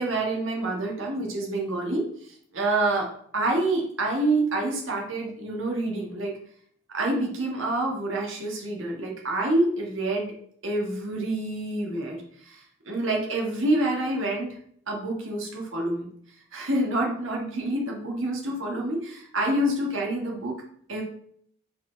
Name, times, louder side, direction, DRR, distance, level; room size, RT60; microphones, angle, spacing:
voice 1, 0.0-3.1 3.3-6.3 6.9-10.3 10.6-14.5 14.9-16.1 16.5-20.6 20.9-21.0, right 1 dB, 60° right, -1 dB, 1.6 m, -27 dB
5.1 x 4.3 x 4.4 m, 0.62 s
head